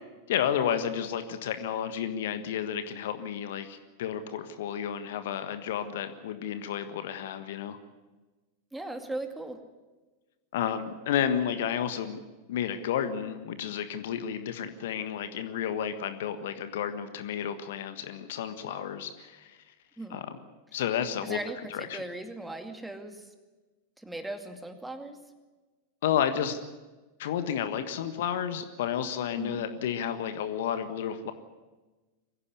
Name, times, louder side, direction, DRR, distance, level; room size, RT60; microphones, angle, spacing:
voice 1, 0.3-7.8 10.5-12.2 12.5-19.6 20.1-20.3 20.7-21.4 21.7-22.0 26.0-26.6 27.2-31.3, left 9 dB, 55° left, 10 dB, 1.4 m, -31 dB
voice 2, 8.7-9.6 20.0-20.2 21.2-23.3 24.0-25.2 29.4-29.7, right 2 dB, 5° right, 6 dB, 2.3 m, -38 dB
23.5 x 15.5 x 9.6 m, 1.2 s
figure-of-eight pair, 90°, 0 cm